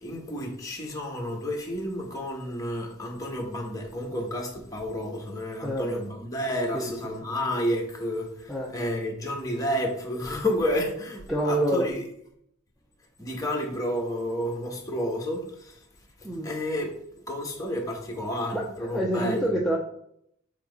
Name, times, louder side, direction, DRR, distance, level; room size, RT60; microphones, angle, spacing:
voice 1, 0.0-12.0 13.2-15.9 16.2-16.9 17.3-19.5, equal, 15° left, 0 dB, 1.3 m, -31 dB
voice 2, 5.6-6.0 6.7-6.9 8.5-8.8 11.3-11.9 16.2-16.5 18.5-19.8, right 1 dB, ahead, -2 dB, 0.6 m, -27 dB
7.3 x 3.0 x 5.3 m, 0.71 s
head